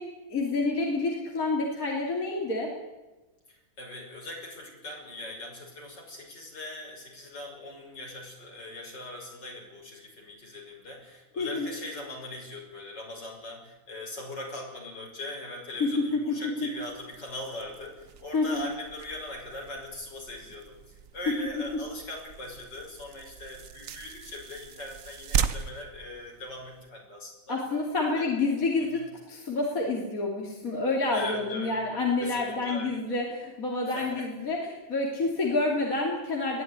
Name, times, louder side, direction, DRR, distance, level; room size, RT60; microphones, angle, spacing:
voice 1, 0.0-2.7 11.4-11.7 15.8-16.7 18.3-18.7 21.3-21.4 27.5-29.0 29.3-36.6, left 3 dB, 45° left, -1 dB, 3.3 m, -28 dB
voice 2, 3.5-27.6 28.1-28.2 28.8-29.1 31.1-31.7 32.2-33.0 33.9-34.3, left 2 dB, 65° left, 0 dB, 6.5 m, -41 dB
sound 1, 16.8-26.9, right 7 dB, 55° right, 1.1 m, -38 dB
21.5 x 15.0 x 9.7 m, 1.1 s
omnidirectional pair, 2.1 m